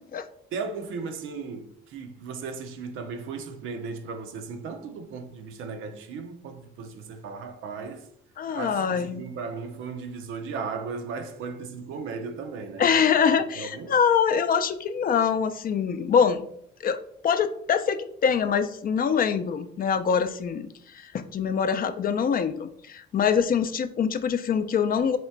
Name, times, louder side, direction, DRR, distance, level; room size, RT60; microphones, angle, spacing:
voice 1, 0.5-8.1 8.5-12.9 13.5-13.9, right 4 dB, 85° right, 0.6 m, -36 dB
voice 2, 8.4-9.2 12.8-16.5 16.8-17.0 17.2-20.7 20.9-25.2, left 7 dB, 45° left, 0.4 m, -24 dB
3.2 x 2.9 x 4.5 m
cardioid pair, 90°, 20 cm